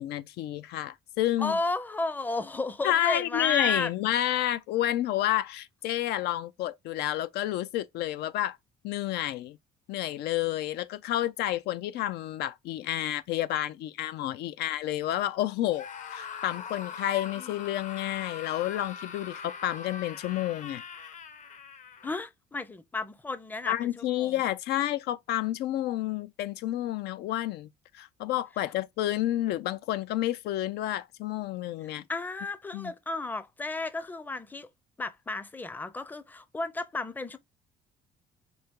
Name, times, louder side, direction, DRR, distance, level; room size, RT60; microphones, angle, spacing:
voice 1, 0.0-1.6 2.8-8.6 8.8-9.6 9.9-20.8 23.7-27.7 27.9-32.0 32.7-32.9, left 13 dB, 80° left, 0.5 m, -30 dB
voice 2, 1.4-3.9 17.4-17.5 22.0-24.3 32.1-34.7 35.0-37.4, left 3 dB, 10° left, 0.5 m, -33 dB
Screaming, 15.7-22.2, left 7 dB, 45° left, 0.8 m, -41 dB
4.2 x 2.8 x 3.6 m
cardioid pair, 110°, 17 cm